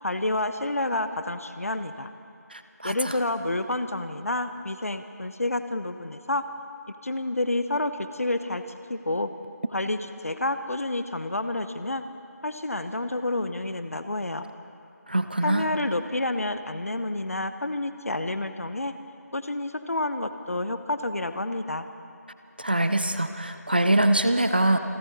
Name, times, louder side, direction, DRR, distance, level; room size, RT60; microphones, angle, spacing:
voice 1, 0.0-2.1 2.8-6.4 7.0-8.6 8.9-9.3 9.7-10.0 10.2-12.0 12.4-14.5 15.4-18.9 19.3-21.9, left 2 dB, 55° left, 10 dB, 0.8 m, -29 dB
voice 2, 2.5-3.2 15.1-15.7 22.6-24.8, right 1 dB, 35° right, 9 dB, 0.5 m, -24 dB
28.0 x 12.0 x 4.1 m, 2.5 s
figure-of-eight pair, 175°, 9 cm